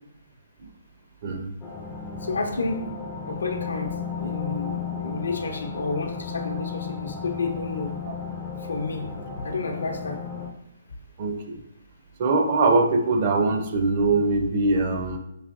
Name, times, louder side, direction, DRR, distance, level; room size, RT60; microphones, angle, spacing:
voice 1, 1.2-1.5 11.2-11.6 12.2-15.2, right 3 dB, 40° right, 4 dB, 0.6 m, -22 dB
sound 1, 1.6-10.5, left 6 dB, 15° left, 0.4 m, -34 dB
voice 2, 2.2-2.9 3.3-7.9 8.6-9.1 9.4-10.2, left 3 dB, 80° left, 4 dB, 0.7 m, -30 dB
4.8 x 2.8 x 2.5 m, 0.83 s
hypercardioid pair, 145°, 0 cm